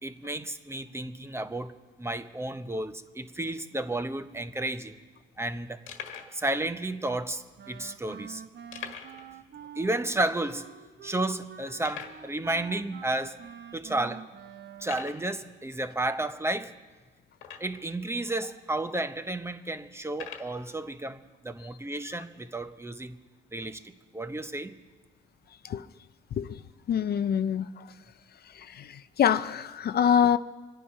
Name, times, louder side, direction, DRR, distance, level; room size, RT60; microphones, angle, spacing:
voice 1, 0.0-5.0 5.4-5.8 6.3-8.4 9.7-10.7 11.0-13.4 13.7-14.3 14.8-16.7 17.6-23.2 23.5-24.8, right 2 dB, 15° right, 0.8 m, -32 dB
sound 1, 4.8-4.9 5.4-5.5 5.9-6.4 7.1-7.2 8.7-9.3 9.6-9.7 10.1-10.2 10.8-10.9 11.8-12.3 13.1-13.2 13.7-13.9 14.8-15.3 17.3-17.9 18.7-18.8 20.1-20.6, left 8 dB, 85° left, 1.6 m, -42 dB
Wind instrument woodwind instrument, 7.6-15.1, right 8 dB, 60° right, 0.9 m, -47 dB
voice 2, 26.9-27.8 28.5-30.4, left 8 dB, 55° left, 0.5 m, -25 dB
25.5 x 10.0 x 5.6 m
cardioid pair, 90°, 20 cm